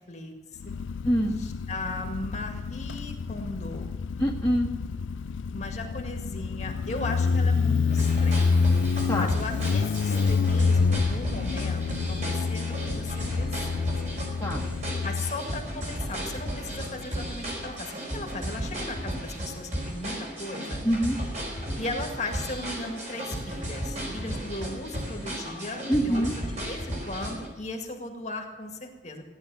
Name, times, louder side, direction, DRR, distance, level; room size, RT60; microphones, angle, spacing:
voice 1, 0.1-0.8 1.4-3.9 5.5-8.7 9.2-14.2 15.0-20.8 21.8-29.2, left 2 dB, 35° left, 3 dB, 2.0 m, -37 dB
Motorcycle, 0.6-17.8, left 5 dB, 75° left, 0.4 m, -28 dB
voice 2, 1.0-1.4 4.2-4.7 9.1-9.3 14.4-14.6 20.8-21.2 25.9-26.3, equal, 10° left, -5 dB, 1.9 m, -24 dB
sound 1, 7.9-27.5, equal, 40° right, 4.9 m, -34 dB
16.5 x 10.5 x 7.1 m, 1.3 s
head